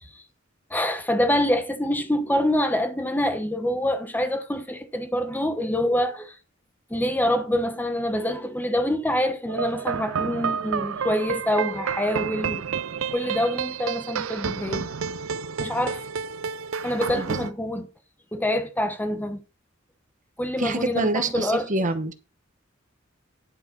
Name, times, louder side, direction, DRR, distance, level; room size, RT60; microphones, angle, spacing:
voice 1, 0.7-6.3 6.9-12.6 13.1-14.9 15.6-16.0 16.8-17.9 18.3-19.4 20.4-21.7, left 1 dB, 10° left, 1.1 m, -25 dB
sound 1, 9.5-17.5, right 6 dB, 80° right, 0.5 m, -30 dB
voice 2, 20.6-22.1, right 2 dB, 40° right, 1.1 m, -26 dB
10.5 x 5.5 x 5.2 m
head